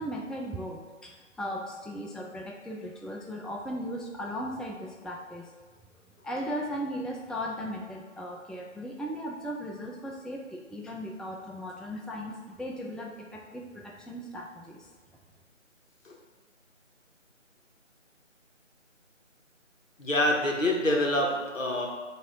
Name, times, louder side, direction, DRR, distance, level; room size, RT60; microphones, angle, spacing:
voice 1, 0.0-5.5 6.2-14.9, equal, ahead, -1 dB, 0.3 m, -37 dB
voice 2, 20.0-21.9, left 1 dB, 85° left, -1 dB, 1.5 m, -26 dB
7.1 x 2.9 x 4.5 m, 1.4 s
figure-of-eight pair, 170°, 38 cm